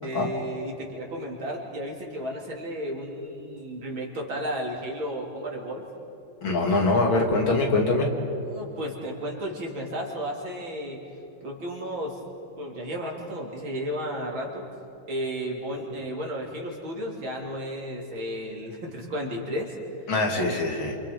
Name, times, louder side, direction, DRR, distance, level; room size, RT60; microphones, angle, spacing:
voice 1, 0.0-5.8 8.5-11.0 11.4-12.2 12.6-14.7 15.1-20.0 20.3-20.8, equal, 80° right, -2 dB, 4.2 m, -33 dB
voice 2, 6.4-8.1 20.1-21.0, left 2 dB, 85° left, 1 dB, 3.3 m, -23 dB
28.5 x 27.5 x 5.4 m, 2.8 s
omnidirectional pair, 2.1 m